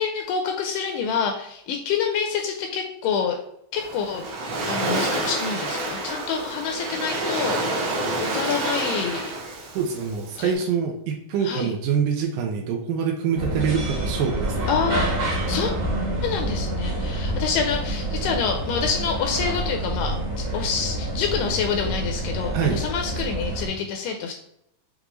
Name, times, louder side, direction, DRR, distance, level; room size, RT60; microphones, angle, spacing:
voice 1, 0.0-3.4 3.7-4.2 4.7-9.3 10.4-10.6 11.4-11.7 14.7-15.1 15.5-15.7 16.2-24.4, left 6 dB, 80° left, 3 dB, 1.9 m, -27 dB
Waves surf, 3.7-10.5, right 2 dB, 65° right, 1.7 m, -28 dB
voice 2, 9.8-14.7 22.5-22.8, right 6 dB, 80° right, 2 dB, 2.0 m, -25 dB
sound 1, 13.3-23.7, right 1 dB, 45° right, 0.9 m, -27 dB
6.5 x 2.4 x 2.9 m, 0.75 s
omnidirectional pair, 4.0 m